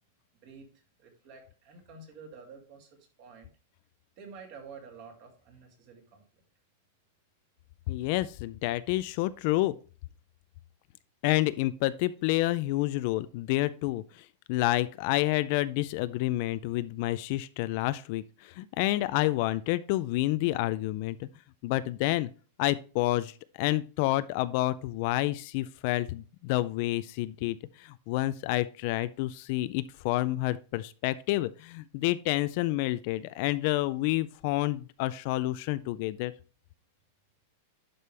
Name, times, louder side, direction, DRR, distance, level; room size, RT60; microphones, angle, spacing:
voice 1, 1.0-2.9 3.2-3.5 4.2-6.2, right 5 dB, 40° right, 2 dB, 2.5 m, -49 dB
voice 2, 7.9-9.7 11.2-21.3 21.6-22.3 22.6-36.3, left 17 dB, 40° left, 15 dB, 0.3 m, -29 dB
11.0 x 5.2 x 3.3 m, 0.37 s
supercardioid pair, 170°, 0 cm